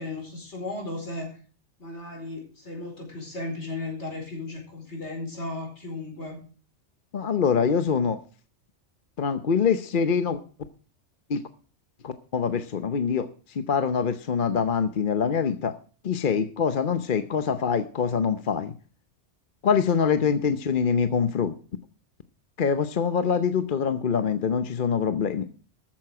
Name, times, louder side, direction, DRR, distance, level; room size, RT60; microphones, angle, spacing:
voice 1, 0.0-1.4 1.8-6.4 20.2-20.3, left 2 dB, 70° left, 2 dB, 5.0 m, -35 dB
voice 2, 7.1-8.2 9.2-10.4 11.3-11.4 12.0-15.7 16.0-18.7 19.6-21.5 22.6-25.4, left 6 dB, 50° left, 10 dB, 0.9 m, -24 dB
13.5 x 9.1 x 4.8 m, 0.38 s
omnidirectional pair, 1.2 m